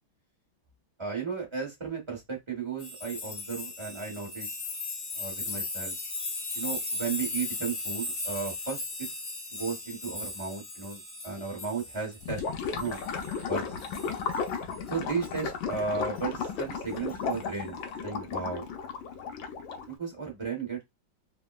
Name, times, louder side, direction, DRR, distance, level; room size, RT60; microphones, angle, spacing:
voice 1, 1.0-4.5 5.1-6.0 6.5-8.8 9.5-13.0 13.4-13.8 14.9-17.8 18.0-18.7 19.8-20.8, right 5 dB, 30° right, 0.5 m, -35 dB
sound 1, 2.8-13.5 13.8-14.8 15.2-15.4 17.1-17.3, left 3 dB, 50° left, 0.7 m, -37 dB
Gurgling / Liquid, 12.2-19.9, left 6 dB, 75° left, 1.2 m, -34 dB
3.5 x 2.1 x 2.2 m
omnidirectional pair, 2.3 m